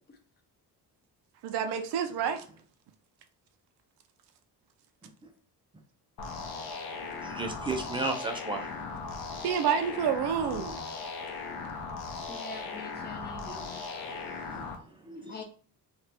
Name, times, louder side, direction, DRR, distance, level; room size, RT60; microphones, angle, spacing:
voice 1, 1.4-2.4 9.4-10.8, right 7 dB, 90° right, 0.6 m, -28 dB
sound 1, 6.2-14.7, left 4 dB, 75° left, 0.7 m, -38 dB
voice 2, 7.1-9.5 10.5-10.8 13.5-13.7 14.0-15.4, right 2 dB, 15° right, 0.4 m, -37 dB
voice 3, 12.3-13.8 15.3-15.4, left 3 dB, 25° left, 0.7 m, -44 dB
2.8 x 2.4 x 3.3 m
cardioid pair, 175°, 38 cm